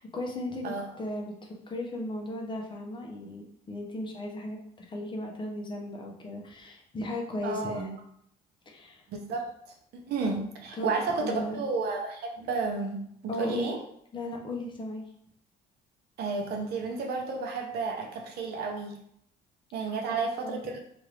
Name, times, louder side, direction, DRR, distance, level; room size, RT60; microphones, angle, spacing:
voice 1, 0.0-0.7 1.0-8.0 8.7-9.0 10.8-10.9 11.2-11.6 13.3-13.7 14.1-15.0 19.7-20.6, left 1 dB, 30° left, 0 dB, 0.7 m, -36 dB
voice 2, 7.4-7.8 9.1-9.5 9.9-13.0 13.4-13.8 16.2-19.0 19.7-20.8, right 4 dB, 70° right, 3 dB, 0.7 m, -31 dB
2.8 x 2.5 x 3.2 m, 0.69 s
cardioid pair, 110°, 17 cm